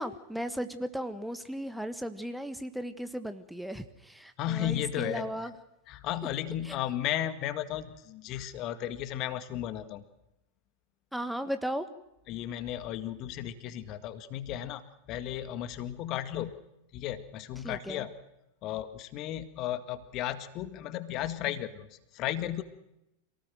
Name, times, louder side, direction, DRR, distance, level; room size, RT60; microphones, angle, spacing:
voice 1, 0.0-5.5 6.6-6.8 11.1-11.9 17.6-18.0, equal, ahead, 10 dB, 1.4 m, -36 dB
voice 2, 4.4-5.2 5.9-10.0 12.3-14.8 15.1-16.6 16.9-18.1 18.6-21.9 22.1-22.6, left 12 dB, 40° left, 12 dB, 1.9 m, -34 dB
27.5 x 18.5 x 7.8 m, 0.88 s
figure-of-eight pair, 90°, 0 cm